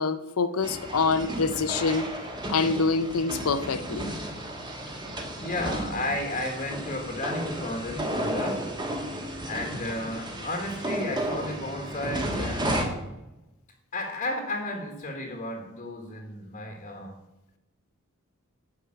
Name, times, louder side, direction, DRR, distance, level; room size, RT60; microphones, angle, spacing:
voice 1, 0.0-2.1 2.5-4.1, left 4 dB, 85° left, 12 dB, 0.7 m, -26 dB
sound 1, 0.6-12.8, right 1 dB, 20° right, 1.5 m, -33 dB
voice 2, 5.4-8.7 9.4-12.9 13.9-17.1, left 1 dB, 35° left, 2 dB, 1.3 m, -33 dB
10.5 x 4.9 x 7.6 m, 0.95 s
head